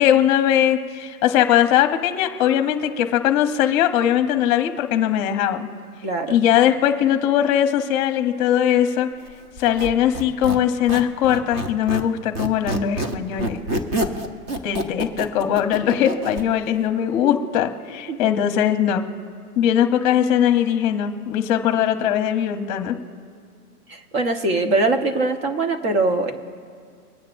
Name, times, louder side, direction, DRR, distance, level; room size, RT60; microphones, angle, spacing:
voice 1, 0.0-5.7 6.3-9.1 9.6-13.6 14.6-19.0 19.6-22.9, left 10 dB, 30° left, 7 dB, 0.9 m, -20 dB
voice 2, 6.0-6.4 14.7-14.8 18.1-18.2 23.9-26.3, right 2 dB, 40° right, 5 dB, 1.4 m, -22 dB
Squeak, 9.6-12.1 12.3-16.5, right 1 dB, 25° right, 0.8 m, -27 dB
24.0 x 9.4 x 2.6 m, 2.2 s
hypercardioid pair, 155°, 46 cm